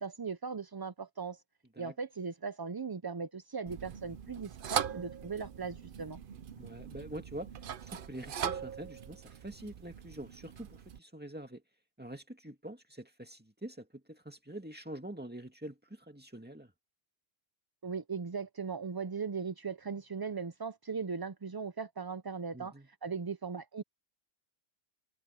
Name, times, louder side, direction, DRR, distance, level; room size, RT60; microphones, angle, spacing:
voice 1, 0.0-1.4 1.8-6.2 17.8-22.7 23.0-23.8, right 5 dB, 35° right, 0.4 m, -38 dB
sound 1, 3.7-11.0, right 8 dB, 60° right, 0.8 m, -40 dB
voice 2, 6.6-7.5 7.8-11.6 12.0-16.7 22.5-22.9, right 1 dB, 10° right, 2.1 m, -45 dB
omnidirectional pair, 1.1 m